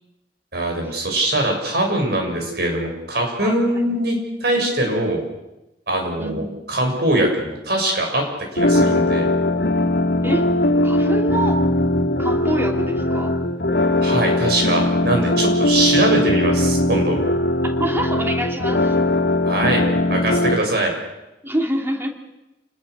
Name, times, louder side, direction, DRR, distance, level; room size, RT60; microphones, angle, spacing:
voice 1, 0.5-5.2 5.9-8.3 8.5-9.3 14.0-17.2 19.5-19.8 20.1-20.9, right 1 dB, 65° right, 2 dB, 7.1 m, -22 dB
voice 2, 3.4-3.8 6.2-6.4 10.2-10.5 10.8-11.6 12.2-13.3 17.8-19.0 21.4-22.1, right 1 dB, 15° right, 3 dB, 2.8 m, -26 dB
sound 1, 8.6-20.6, left 1 dB, 90° left, 2.1 m, -19 dB
28.5 x 20.0 x 6.8 m, 0.97 s
head